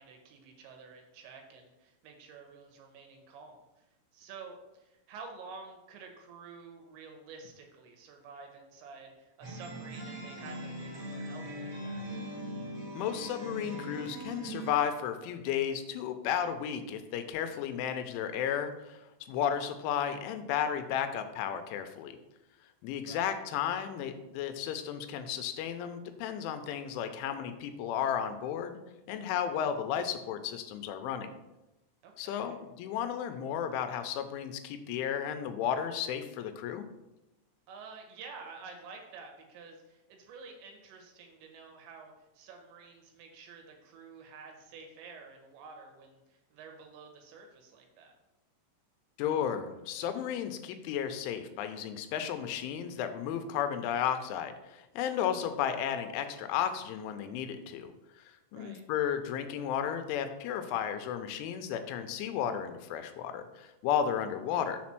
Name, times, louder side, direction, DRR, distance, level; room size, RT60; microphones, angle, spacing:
voice 1, 0.0-3.9 4.1-12.0 23.1-23.3 32.0-32.6 37.7-48.2 58.5-58.8, right 4 dB, 80° right, 3 dB, 3.3 m, -50 dB
sound 1, 9.4-14.7, right 1 dB, 45° right, 2.4 m, -41 dB
voice 2, 13.0-19.0 19.3-22.2 22.8-28.8 29.1-31.3 32.2-36.9 49.2-57.9 58.2-58.3 58.5-64.8, left 9 dB, 90° left, 8 dB, 3.1 m, -33 dB
6.8 x 4.2 x 5.9 m, 0.96 s
omnidirectional pair, 5.3 m